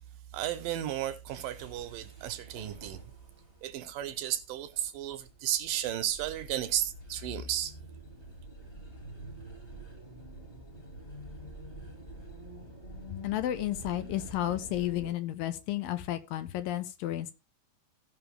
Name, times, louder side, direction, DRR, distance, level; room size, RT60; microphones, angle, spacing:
voice 1, 0.3-3.0 3.6-7.7, right 12 dB, 80° right, 2.2 m, -33 dB
sound 1, 1.2-15.1, equal, 25° left, 1.4 m, -47 dB
voice 2, 13.2-17.3, left 13 dB, 80° left, 2.4 m, -32 dB
16.5 x 5.5 x 3.4 m
omnidirectional pair, 4.3 m